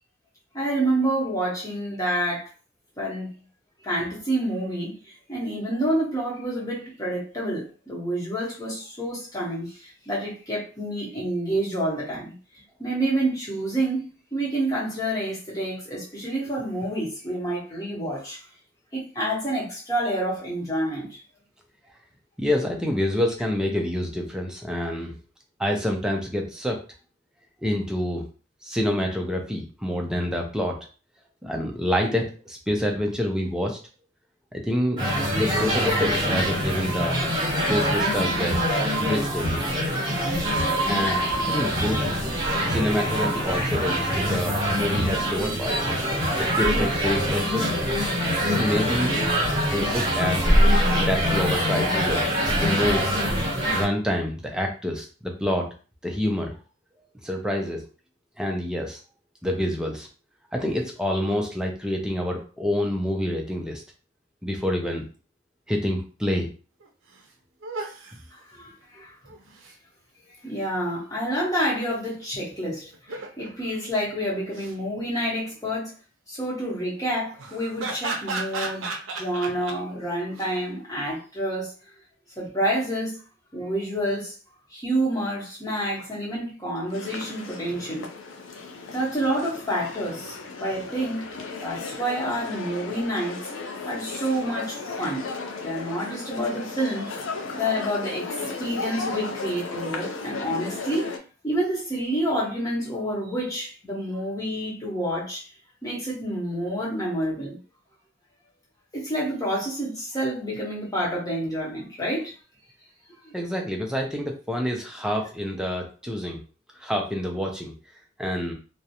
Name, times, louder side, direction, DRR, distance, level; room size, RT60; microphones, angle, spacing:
voice 1, 0.5-2.5 3.0-3.3 3.8-12.3 12.8-18.4 18.9-21.2 68.3-69.1 70.4-75.9 76.3-81.7 82.4-83.2 83.5-84.4 84.7-88.1 88.9-91.3 91.6-93.4 93.8-95.3 95.6-97.2 97.5-101.2 101.4-105.4 105.8-107.6 108.9-112.3 113.2-113.3, right 1 dB, 15° left, 0.9 m, -28 dB
voice 2, 22.4-25.2 25.6-26.8 27.6-28.3 28.6-30.8 31.4-33.8 34.5-35.0 35.4-37.3 37.7-38.6 39.0-39.6 40.9-42.1 42.7-45.9 46.4-47.9 48.5-49.1 49.6-50.5 51.0-52.2 52.6-53.1 53.7-55.7 56.0-56.6 57.2-57.8 58.4-59.0 59.4-60.1 60.5-63.8 64.4-65.0 65.7-66.5 113.3-116.4 116.8-117.7 118.2-118.5, left 1 dB, 5° right, 0.4 m, -27 dB
sound 1, 35.0-53.8, equal, 20° right, 0.8 m, -24 dB
sound 2, 66.8-66.9 67.2-67.3 67.6-68.2 69.3-69.7 72.9-73.5 74.3-74.7 77.4-79.8 80.3-80.5, right 3 dB, 85° right, 0.5 m, -34 dB
sound 3, 86.9-101.2, left 4 dB, 80° left, 0.4 m, -35 dB
2.4 x 2.0 x 2.8 m
head